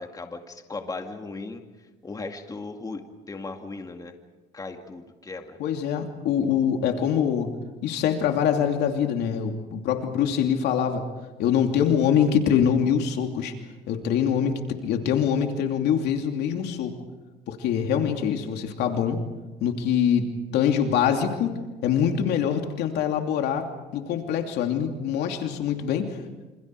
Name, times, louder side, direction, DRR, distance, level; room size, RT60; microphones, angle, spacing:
voice 1, 0.0-1.6 2.0-4.1 4.5-5.6, left 3 dB, 20° left, 4 dB, 2.4 m, -37 dB
voice 2, 5.6-7.5 7.8-11.0 11.4-13.5 13.9-16.9 17.5-19.2 19.6-21.6 21.8-23.7 23.9-26.2, left 8 dB, 80° left, 4 dB, 2.9 m, -24 dB
28.0 x 26.5 x 4.8 m, 1.2 s
cardioid pair, 110°, 17 cm